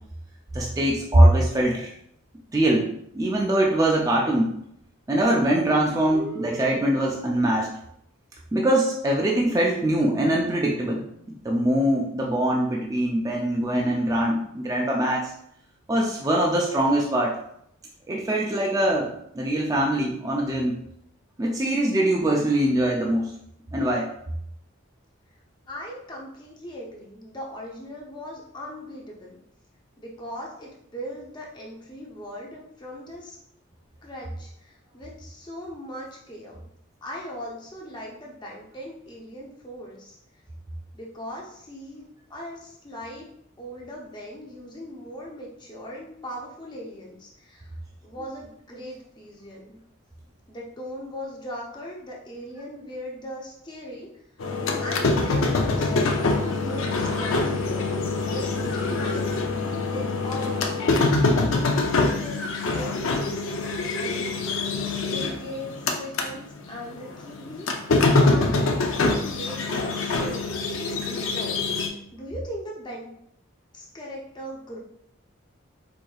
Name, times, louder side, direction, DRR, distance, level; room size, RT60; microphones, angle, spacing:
voice 1, 0.5-1.9 2.5-2.9 3.1-4.5 5.1-7.7 8.5-11.0 11.4-15.3 15.9-17.4 18.1-20.8 21.4-23.3 23.7-24.1, right 1 dB, 15° right, -2 dB, 0.3 m, -22 dB
sound 1, 5.2-7.2, right 2 dB, 55° right, 0.6 m, -36 dB
voice 2, 25.7-29.4 30.0-33.4 34.0-36.6 37.0-40.2 40.9-43.3 43.6-47.7 48.0-49.7 50.5-54.1 54.8-59.3 59.8-60.6 61.9-63.4 63.9-64.4 64.9-67.7 68.2-71.6 72.1-73.1 73.7-74.8, equal, 20° left, -2 dB, 0.6 m, -39 dB
sound 2, 54.4-66.3 66.6-71.9, left 3 dB, 65° left, 0.5 m, -24 dB
4.6 x 2.7 x 2.3 m, 0.72 s
head